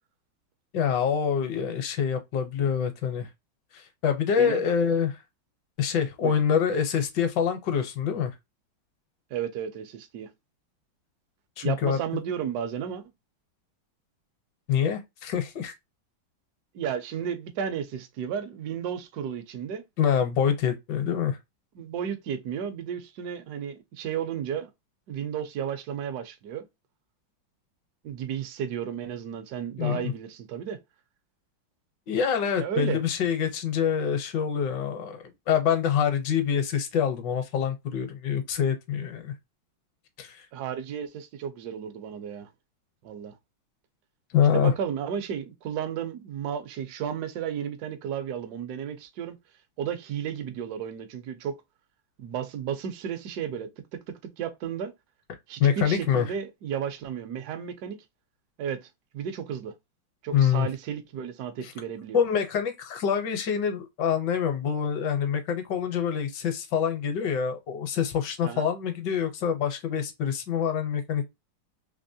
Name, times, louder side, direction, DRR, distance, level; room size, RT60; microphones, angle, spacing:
voice 1, 0.7-3.3 3.7-5.2 5.8-8.3 11.6-12.0 14.7-15.7 20.0-21.4 29.8-30.1 32.1-39.3 40.2-40.5 44.3-44.7 55.6-56.3 60.3-60.7 61.6-61.7 62.1-71.2, left 8 dB, 65° left, 1.3 m, -26 dB
voice 2, 9.3-10.3 11.6-13.0 16.7-19.8 21.8-24.7 25.1-26.7 28.0-30.8 32.6-33.0 40.5-42.5 43.0-43.3 44.5-49.4 49.8-51.6 52.2-54.9 55.5-58.0 58.6-59.7 60.2-62.2 68.4-68.7, right 8 dB, 65° right, 1.0 m, -33 dB
3.5 x 2.9 x 2.6 m
omnidirectional pair, 2.2 m